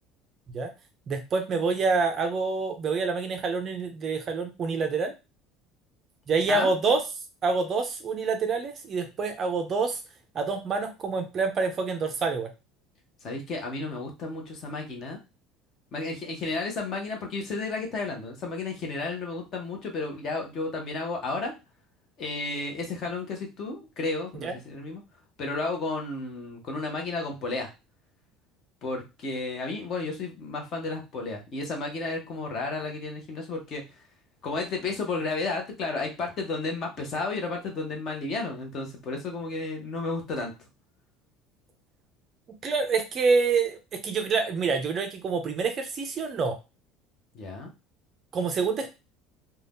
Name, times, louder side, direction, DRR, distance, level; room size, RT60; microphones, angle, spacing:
voice 1, 1.1-5.1 6.3-7.0 7.4-10.0 10.3-12.5 24.4-24.5 42.6-46.6 48.3-48.9, right 4 dB, 25° right, 6 dB, 0.4 m, -27 dB
voice 2, 13.2-15.2 15.9-21.5 22.2-25.0 25.4-27.7 28.8-33.8 34.4-40.5 47.3-47.7, left 3 dB, 35° left, 2 dB, 0.8 m, -32 dB
2.6 x 2.2 x 3.4 m, 0.27 s
cardioid pair, 170°, 0 cm